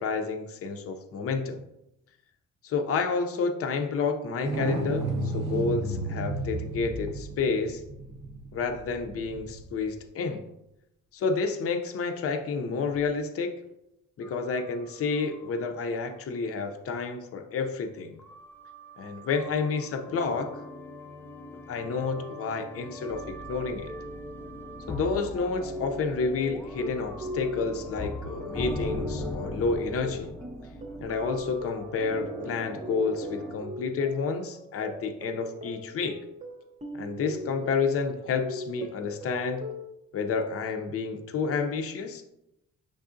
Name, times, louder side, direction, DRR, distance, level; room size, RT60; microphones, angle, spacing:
voice 1, 0.0-1.6 2.6-7.8 8.5-10.4 11.1-13.5 14.2-18.1 19.0-20.6 21.7-23.9 24.9-30.4 31.0-36.2 36.9-39.7 40.1-42.2, left 4 dB, 50° left, 5 dB, 0.6 m, -30 dB
sound 1, 4.4-9.9 12.9-13.0, right 2 dB, 85° right, 0.8 m, -33 dB
sound 2, 14.2-15.8 16.1-16.2 17.0-17.1 18.2-33.6, left 1 dB, 5° left, 0.4 m, -40 dB
sound 3, 25.2-39.9, left 2 dB, 25° right, 0.7 m, -40 dB
5.3 x 3.6 x 2.6 m, 0.86 s
cardioid pair, 90°, 30 cm